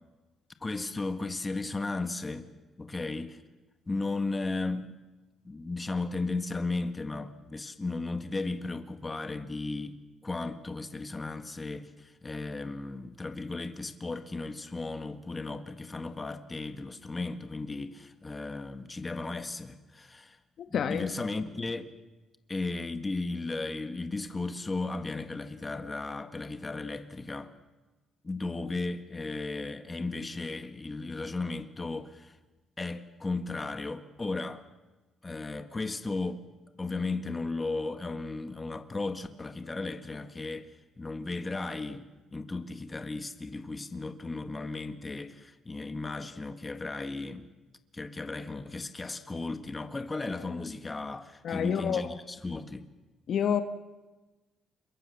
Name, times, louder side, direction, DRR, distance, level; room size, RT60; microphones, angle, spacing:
voice 1, 0.6-2.5 2.8-3.4 3.9-4.9 5.5-20.4 20.7-21.9 22.5-27.5 28.2-32.4 32.8-34.6 35.2-36.4 36.8-40.7 41.0-47.5 47.9-52.9, left 3 dB, 25° left, 1.8 m, -35 dB
voice 2, 20.6-21.1 51.4-52.1 53.3-53.6, left 8 dB, 60° left, 1.5 m, -28 dB
28.0 x 23.0 x 7.2 m
cardioid pair, 90°, 0 cm